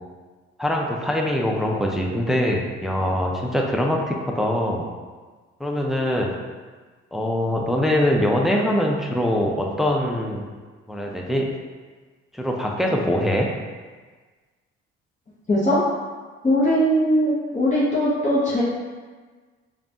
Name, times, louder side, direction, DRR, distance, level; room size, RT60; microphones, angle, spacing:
voice 1, 0.6-4.9 5.6-6.3 7.1-10.4 10.9-11.5 12.3-13.5, left 1 dB, ahead, 0 dB, 0.6 m, -23 dB
voice 2, 15.5-15.8 16.4-18.6, equal, 25° left, -8 dB, 1.1 m, -20 dB
5.0 x 2.5 x 2.9 m, 1.4 s
hypercardioid pair, 55°, 31 cm